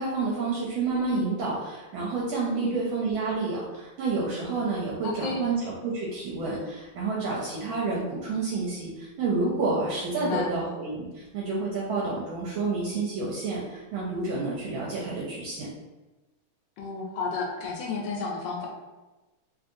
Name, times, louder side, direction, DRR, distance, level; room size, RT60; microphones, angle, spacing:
voice 1, 0.0-15.7, right 3 dB, 75° right, -5 dB, 1.3 m, -29 dB
voice 2, 5.0-5.4 10.1-10.5 16.8-18.7, left 4 dB, 70° left, -1 dB, 1.1 m, -32 dB
3.2 x 2.7 x 2.5 m, 1.1 s
omnidirectional pair, 2.4 m